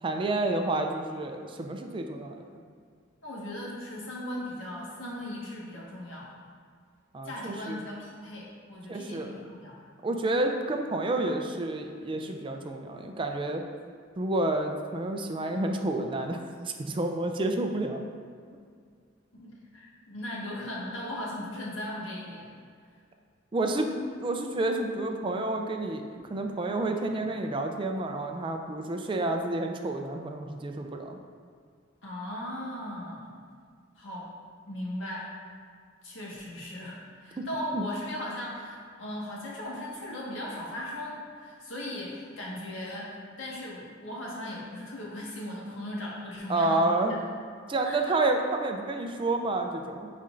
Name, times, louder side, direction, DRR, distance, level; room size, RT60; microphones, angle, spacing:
voice 1, 0.0-2.6 7.1-7.8 8.9-9.3 10.0-13.6 14.2-16.5 16.9-18.0 23.5-23.9 24.2-26.0 26.3-31.2 37.4-37.5 37.7-37.8 46.5-47.2 47.7-50.1, right 2 dB, 25° right, 4 dB, 0.4 m, -29 dB
voice 2, 3.2-6.3 7.2-9.7 19.3-22.5 26.2-26.4 32.0-33.3 33.9-34.3 34.7-35.3 36.0-47.2 47.8-48.0, left 1 dB, 85° left, -5 dB, 1.5 m, -38 dB
8.9 x 4.3 x 2.5 m, 2.1 s
head